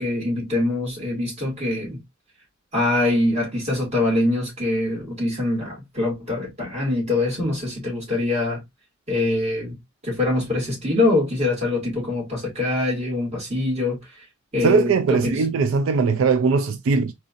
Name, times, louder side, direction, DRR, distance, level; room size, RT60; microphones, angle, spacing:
voice 1, 0.0-2.0 2.7-8.6 9.1-9.8 10.0-14.0 14.5-15.4, left 2 dB, 35° right, 2.4 m, -24 dB
voice 2, 14.6-17.1, right 4 dB, 85° right, 0.4 m, -20 dB
4.0 x 2.7 x 2.5 m
head